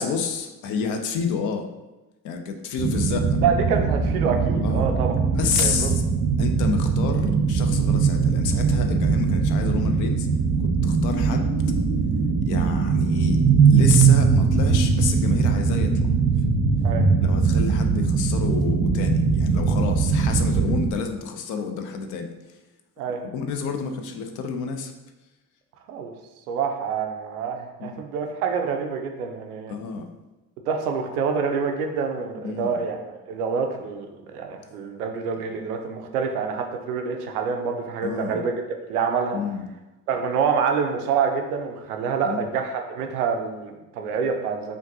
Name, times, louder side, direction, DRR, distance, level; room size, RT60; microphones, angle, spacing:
voice 1, 0.0-1.7 2.2-3.4 4.6-4.9 5.3-6.0 6.4-10.3 10.6-11.5 12.5-13.4 13.7-15.9 17.2-22.3 23.3-24.9 27.8-28.0 29.7-30.1 32.4-32.8 38.0-38.4 39.3-39.7 42.2-42.4, left 6 dB, 40° left, 5 dB, 0.5 m, -29 dB
sound 1, 2.8-20.9, right 5 dB, 30° right, 0.7 m, -21 dB
voice 2, 3.4-5.1 5.6-5.9 16.8-17.1 23.0-23.2 25.9-26.1 26.5-29.7 30.7-38.5 38.9-39.4 40.1-44.8, right 6 dB, 70° right, 4 dB, 0.6 m, -26 dB
5.1 x 2.5 x 2.6 m, 1.0 s
figure-of-eight pair, 50°, 47 cm